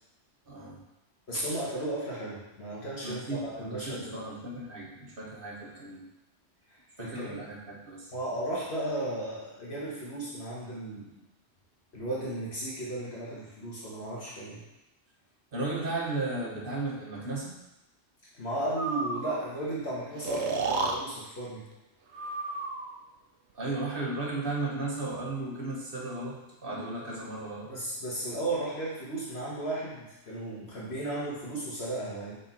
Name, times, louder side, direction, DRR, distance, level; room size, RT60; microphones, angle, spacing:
voice 1, 0.5-0.8 3.0-6.1 7.0-8.1 15.5-17.5 23.5-27.7, right 2 dB, 50° right, -3 dB, 1.4 m, -35 dB
voice 2, 1.3-4.2 6.7-7.4 8.1-11.1 11.9-14.6 18.3-21.6 27.7-32.3, right 1 dB, 60° left, -6 dB, 1.5 m, -35 dB
Breathing, 18.8-19.4 20.2-21.0 22.1-23.0, right 3 dB, 75° right, 1.0 m, -31 dB
5.9 x 4.0 x 4.4 m, 0.92 s
omnidirectional pair, 1.2 m